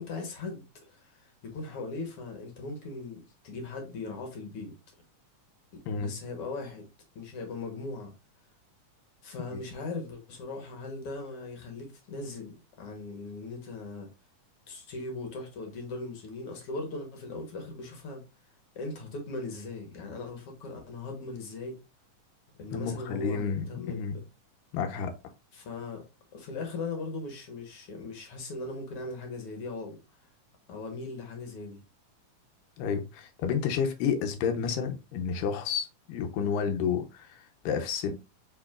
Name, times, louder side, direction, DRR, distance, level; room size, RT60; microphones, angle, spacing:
voice 1, 0.0-4.7 5.7-6.8 7.1-8.1 9.2-14.1 14.7-18.2 18.7-21.8 22.6-24.2 25.5-26.0 26.3-30.0 30.7-31.8, left 3 dB, 60° left, 1.7 m, -39 dB
voice 2, 22.7-24.2 24.7-25.1 32.8-38.1, left 6 dB, 90° left, 2.4 m, -30 dB
6.0 x 3.7 x 2.3 m
omnidirectional pair, 3.7 m